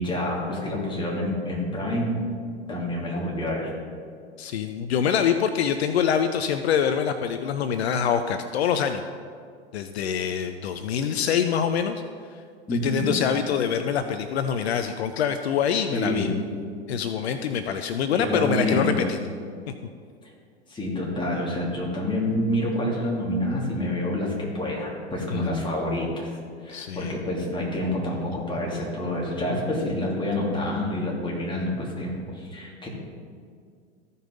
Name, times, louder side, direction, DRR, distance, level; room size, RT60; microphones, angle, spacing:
voice 1, 0.0-2.2 2.7-3.7 12.7-13.1 15.9-16.4 18.1-19.1 20.7-26.3 26.6-32.9, left 1 dB, 15° left, -3 dB, 2.7 m, -27 dB
voice 2, 4.4-9.0 9.7-12.0 12.7-16.3 16.9-19.2 19.7-19.8 25.3-25.4 26.7-27.2, left 8 dB, 70° left, 8 dB, 0.6 m, -25 dB
14.5 x 5.4 x 3.9 m, 2.1 s
hypercardioid pair, 95°, 33 cm